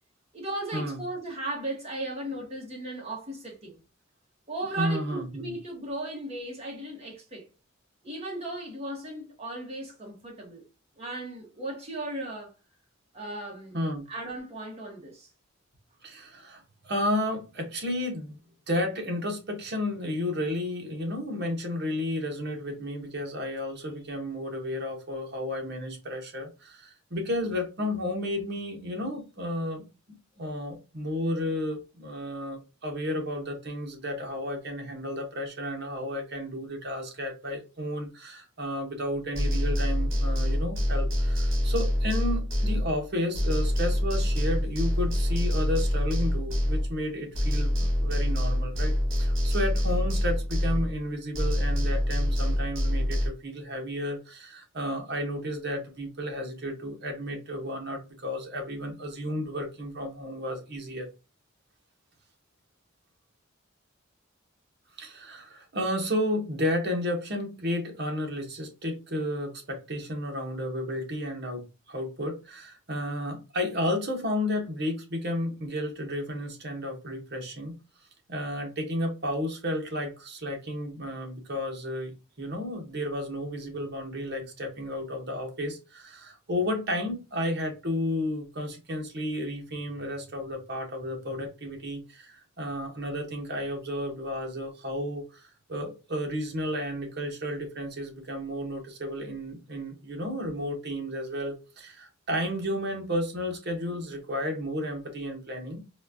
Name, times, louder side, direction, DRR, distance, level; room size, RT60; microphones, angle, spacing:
voice 1, 0.3-3.8 4.5-7.4 8.0-10.6 11.0-12.5 13.1-13.7 14.1-15.3, right 2 dB, 30° right, 1.2 m, -36 dB
voice 2, 4.8-5.6 13.7-14.0 16.0-18.4 18.7-29.8 30.4-48.9 49.2-61.1 65.0-77.7 78.3-105.9, left 1 dB, 55° right, 1.1 m, -32 dB
sound 1, 39.3-43.1 43.3-47.1 47.3-51.1 51.3-53.3, equal, 75° right, 1.6 m, -26 dB
4.1 x 2.3 x 2.6 m
head